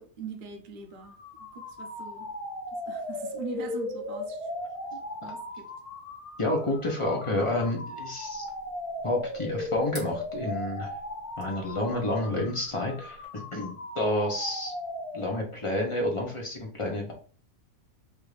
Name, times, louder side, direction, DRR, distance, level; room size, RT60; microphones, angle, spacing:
voice 1, 0.0-2.3 2.7-4.5 4.9-5.7, right 5 dB, 60° right, 0.5 m, -42 dB
sound 1, 1.0-15.7, left 2 dB, 70° left, 1.3 m, -37 dB
voice 2, 6.4-8.4 9.0-10.9 11.4-14.7 15.1-17.1, left 1 dB, 35° left, 0.5 m, -29 dB
sound 2, 8.2-13.2, left 2 dB, 55° left, 1.5 m, -51 dB
3.4 x 2.5 x 3.2 m
omnidirectional pair, 1.7 m